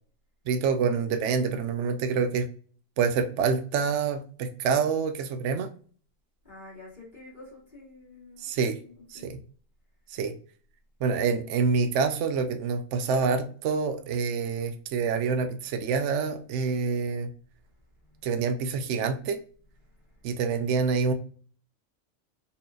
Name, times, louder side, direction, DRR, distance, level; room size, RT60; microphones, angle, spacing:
voice 1, 0.5-2.5 3.0-5.7 8.4-8.8 9.1-9.4 10.1-10.3 11.0-17.3 18.2-19.4 20.2-21.1, right 5 dB, 65° right, 7 dB, 0.9 m, -27 dB
voice 2, 6.4-8.5 8.8-9.3, left 2 dB, 35° left, -6 dB, 1.5 m, -48 dB
4.2 x 2.7 x 2.4 m, 0.43 s
omnidirectional pair, 1.4 m